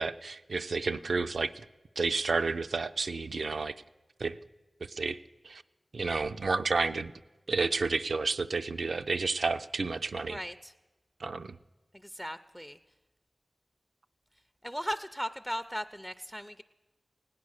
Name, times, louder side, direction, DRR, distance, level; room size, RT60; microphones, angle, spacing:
voice 1, 0.0-1.7 2.0-3.8 4.2-4.4 4.8-5.2 5.4-5.6 5.9-7.1 7.5-10.4 11.2-11.6, right 4 dB, 85° right, 11 dB, 0.4 m, -31 dB
voice 2, 10.2-10.7 11.9-12.8 14.6-16.6, equal, 5° left, 11 dB, 0.4 m, -37 dB
17.0 x 9.6 x 6.3 m, 1.1 s
wide cardioid pair, 60°, 0 cm